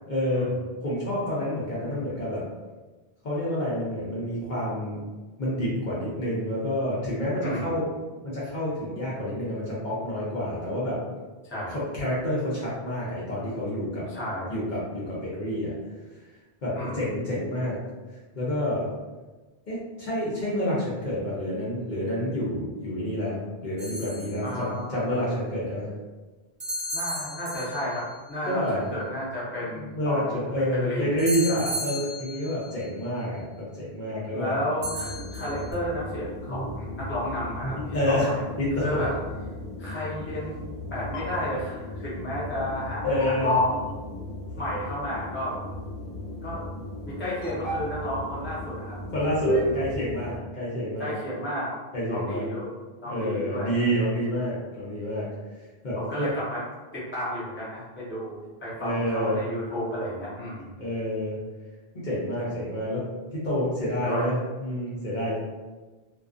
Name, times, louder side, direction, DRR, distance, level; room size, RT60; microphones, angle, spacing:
voice 1, 0.0-0.6 0.8-2.4 3.2-5.0 5.4-7.8 8.2-11.0 11.7-14.0 14.5-15.7 16.6-17.8 18.3-18.9 19.7-25.9 28.5-28.9 29.8-34.6 37.9-38.3 38.6-39.0 43.0-43.5 49.1-51.1 51.9-52.4 53.1-55.3 55.8-56.3 58.8-59.5 60.8-61.4 61.9-63.1 63.3-64.4 64.6-65.4, equal, 55° left, -8 dB, 0.7 m, -28 dB
voice 2, 7.4-7.8 11.4-11.8 14.1-14.6 16.7-17.1 24.4-25.3 26.9-31.2 31.5-31.7 34.3-38.4 38.8-39.1 39.8-40.5 40.9-44.0 44.6-45.6 46.4-46.6 47.1-49.0 49.6-49.8 51.0-51.7 52.1-53.9 55.9-56.6 56.9-60.8 64.0-64.2, equal, 15° left, -8 dB, 0.6 m, -32 dB
sound 1, 23.8-24.5 26.6-28.1 31.2-32.7 34.8-35.7, equal, 40° right, 0.8 m, -34 dB
sound 2, 34.8-50.4, left 1 dB, 85° left, 0.9 m, -33 dB
2.3 x 2.3 x 2.4 m, 1.3 s
omnidirectional pair, 1.1 m